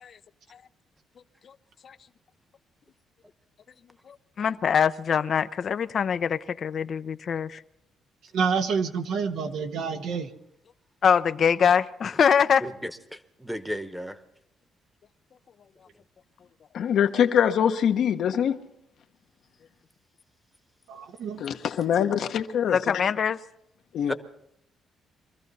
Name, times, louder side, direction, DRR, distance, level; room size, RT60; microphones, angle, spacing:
voice 1, 4.1-7.6 11.0-12.7 22.7-23.4, left 7 dB, 55° left, 0.5 m, -23 dB
voice 2, 8.3-10.3 20.9-21.4, right 5 dB, 80° right, 1.3 m, -28 dB
voice 3, 12.6-14.2 24.1-24.2, equal, ahead, 1.1 m, -34 dB
voice 4, 16.7-18.6 21.4-22.9 23.9-24.1, left 8 dB, 70° left, 1.0 m, -24 dB
24.0 x 14.0 x 4.1 m
cardioid pair, 90°, 0 cm